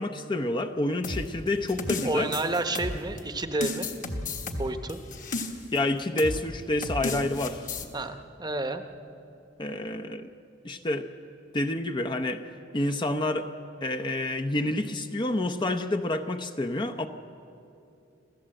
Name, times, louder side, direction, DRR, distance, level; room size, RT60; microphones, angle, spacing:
voice 1, 0.0-2.3 5.7-7.6 9.6-10.3 10.6-11.1 11.5-12.4 12.7-13.5 13.8-17.1, left 1 dB, 25° left, 7 dB, 0.7 m, -28 dB
sound 1, 1.0-3.2 3.6-5.8 6.2-6.4 6.8-7.9, left 2 dB, 45° left, 1.5 m, -33 dB
voice 2, 2.0-3.9 4.6-5.0 7.9-8.8, right 2 dB, 20° right, 8 dB, 0.9 m, -30 dB
27.0 x 15.5 x 7.7 m, 2.7 s
head